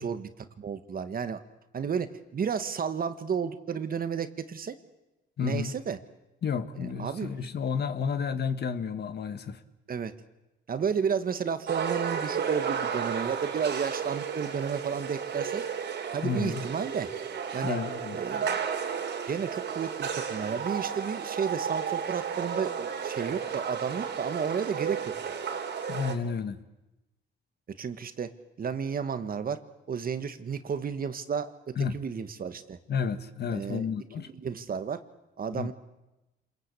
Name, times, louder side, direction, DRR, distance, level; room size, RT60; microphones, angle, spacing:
voice 1, 0.0-1.4 1.7-4.8 5.4-6.0 6.8-7.5 9.9-10.1 10.7-15.6 16.1-17.1 17.5-17.8 18.1-18.6 19.3-25.3 27.8-28.3 28.6-29.6 29.9-32.8 33.5-33.9 34.2-35.0 35.4-35.7, right 6 dB, 45° right, 1.7 m, -32 dB
voice 2, 5.4-5.7 6.4-9.6 16.2-16.6 17.6-18.2 25.9-26.6 31.7-32.0 32.9-34.3 35.5-35.7, left 6 dB, 55° left, 1.7 m, -31 dB
sound 1, 11.7-26.2, right 7 dB, 65° right, 3.4 m, -33 dB
27.5 x 21.5 x 8.5 m
cardioid pair, 90°, 20 cm